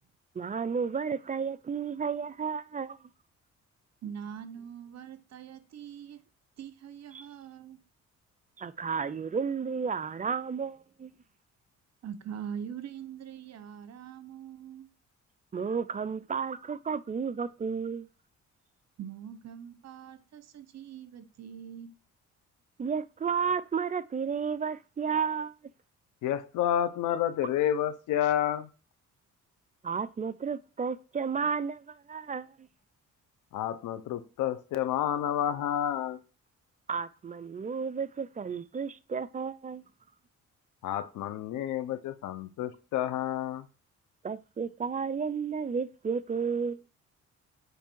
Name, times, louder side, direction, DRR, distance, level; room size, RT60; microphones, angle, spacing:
voice 1, 0.4-3.0 7.1-7.3 8.6-11.1 15.5-18.1 22.8-25.5 29.8-32.7 36.9-39.8 44.2-46.8, right 6 dB, 25° right, 0.5 m, -32 dB
voice 2, 4.0-6.2 6.6-7.8 12.0-14.9 19.0-21.9, right 8 dB, 60° right, 1.0 m, -43 dB
voice 3, 26.2-28.7 33.5-36.2 40.8-43.7, left 11 dB, 85° left, 0.8 m, -30 dB
9.0 x 3.4 x 4.6 m
cardioid pair, 90°, 30 cm